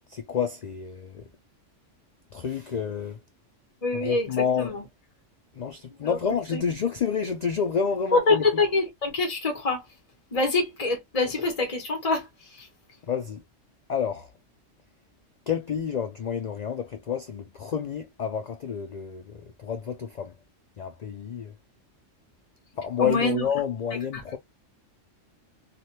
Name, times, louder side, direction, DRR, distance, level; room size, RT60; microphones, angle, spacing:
voice 1, 0.1-1.2 2.3-3.2 3.9-4.8 5.5-8.4 13.0-13.4 13.9-14.3 15.5-20.3 20.8-21.5 22.8-24.4, left 7 dB, 75° left, 0.3 m, -29 dB
voice 2, 3.8-4.3 4.6-4.7 6.0-6.2 6.5-6.6 8.1-9.8 10.3-12.3 12.6-12.7 23.0-23.4 24.1-24.2, left 3 dB, 30° left, 1.0 m, -25 dB
3.3 x 2.4 x 2.7 m
omnidirectional pair, 1.3 m